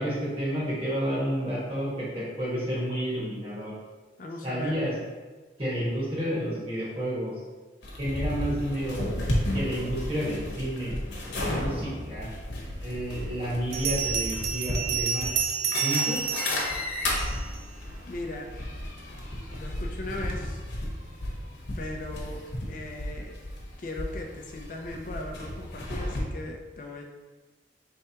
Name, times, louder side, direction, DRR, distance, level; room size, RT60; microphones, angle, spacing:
voice 1, 0.0-3.7 4.4-4.9 5.6-7.3 8.0-9.0 9.5-10.9 11.2-12.3 12.8-15.3 15.8-16.3, equal, 30° right, -7 dB, 1.4 m, -30 dB
voice 2, 4.2-4.8 18.0-18.5 19.5-20.6 21.8-23.5 23.8-27.0, left 2 dB, 45° left, 1 dB, 0.4 m, -38 dB
sound 1, 7.8-26.2, left 1 dB, 80° left, 0.9 m, -33 dB
Bell, 13.7-17.6, right 8 dB, 70° right, 0.5 m, -30 dB
4.6 x 3.3 x 2.8 m, 1.3 s
head